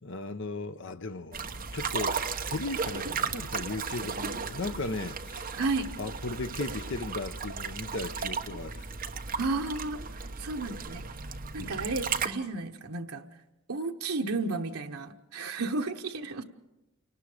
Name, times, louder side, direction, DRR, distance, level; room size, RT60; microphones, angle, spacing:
voice 1, 0.0-5.6 6.0-8.9 11.6-11.8, left 3 dB, 60° left, 0.9 m, -37 dB
sound 1, 1.3-12.3, right 5 dB, 40° right, 1.1 m, -35 dB
voice 2, 5.5-5.9 9.4-10.0 10.4-11.0 11.5-13.2 13.7-16.4, right 3 dB, 85° right, 1.1 m, -32 dB
28.5 x 19.0 x 5.0 m
head